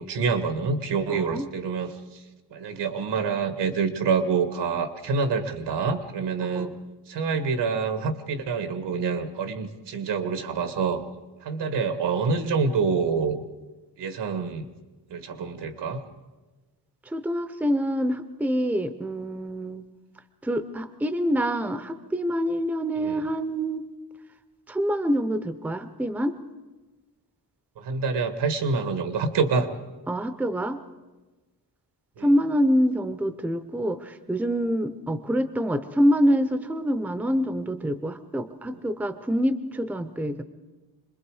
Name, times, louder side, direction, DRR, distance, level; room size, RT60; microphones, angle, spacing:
voice 1, 0.0-2.2 2.5-6.7 7.1-11.0 11.4-13.4 14.0-14.7 15.1-16.0 23.0-23.2 27.8-29.7 32.2-32.3, right 5 dB, 85° right, 9 dB, 1.6 m, -27 dB
voice 2, 1.1-1.5 6.4-6.8 17.1-19.8 20.4-23.8 24.7-26.3 30.1-30.8 32.2-40.4, equal, 5° right, 11 dB, 0.6 m, -26 dB
26.5 x 21.0 x 4.8 m, 1.2 s
wide cardioid pair, 170°, 40 cm